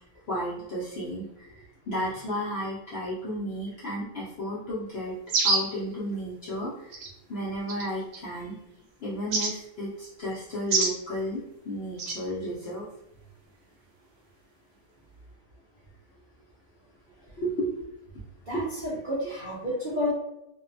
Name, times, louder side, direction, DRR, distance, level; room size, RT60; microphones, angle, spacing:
voice 1, 0.3-5.1 5.4-7.0 7.3-8.6 9.0-11.4 11.6-12.9 17.4-17.7 18.5-18.6, equal, 65° left, -7 dB, 0.6 m, -33 dB
sound 1, 5.3-5.8 6.9-7.1 7.7-8.2 9.3-9.5 10.7-11.0 12.0-12.2, right 3 dB, 70° right, 1.0 m, -25 dB
voice 2, 18.5-20.1, left 1 dB, 55° right, -8 dB, 0.5 m, -30 dB
2.6 x 2.1 x 2.5 m, 0.85 s
omnidirectional pair, 1.6 m